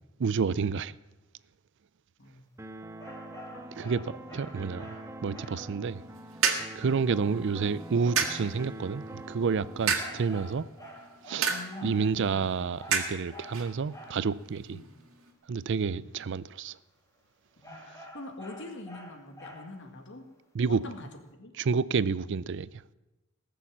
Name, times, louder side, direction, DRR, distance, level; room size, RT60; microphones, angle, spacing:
voice 1, 0.2-1.0 3.8-6.0 6.7-10.7 11.3-11.5 11.8-14.8 15.5-16.8 20.5-20.8 21.6-22.7, right 5 dB, 60° right, 0.5 m, -29 dB
sound 1, 2.6-10.6, right 1 dB, 15° right, 0.6 m, -44 dB
sound 2, 3.0-5.7 10.0-14.3 17.6-19.9, equal, 15° left, 2.3 m, -48 dB
sound 3, 5.9-15.3, right 6 dB, 85° right, 2.1 m, -35 dB
voice 2, 11.5-12.5 14.7-14.9 17.6-20.2 20.7-21.5, left 2 dB, 60° left, 2.0 m, -44 dB
19.0 x 7.0 x 7.3 m
head